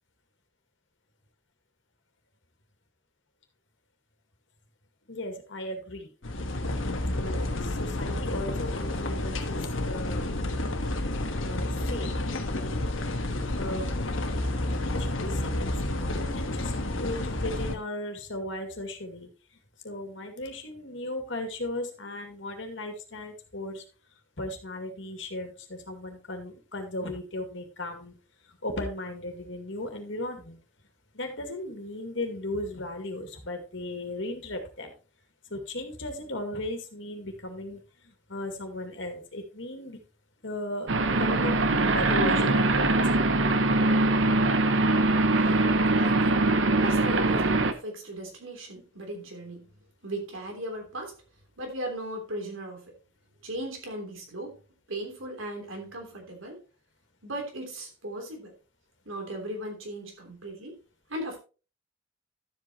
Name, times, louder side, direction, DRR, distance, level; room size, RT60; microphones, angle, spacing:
voice 1, 5.1-6.1 7.1-10.3 11.4-12.2 12.5-12.8 13.5-13.9 14.8-19.3 19.8-23.8 24.4-28.1 28.5-30.6 31.1-34.9 35.5-40.0 40.4-40.9 41.2-43.3, left 1 dB, 70° left, 5 dB, 2.2 m, -36 dB
sound 1, 6.2-17.8, left 1 dB, 85° left, 1.3 m, -30 dB
sound 2, 40.9-47.7, right 2 dB, 70° right, 1.0 m, -22 dB
voice 2, 45.4-46.5 46.8-49.7 50.0-51.2 51.6-52.9 53.4-54.6 54.9-56.6 57.2-58.5 59.0-60.8 61.1-61.4, right 1 dB, 90° right, 2 dB, 3.3 m, -37 dB
12.0 x 8.0 x 3.0 m, 0.33 s
head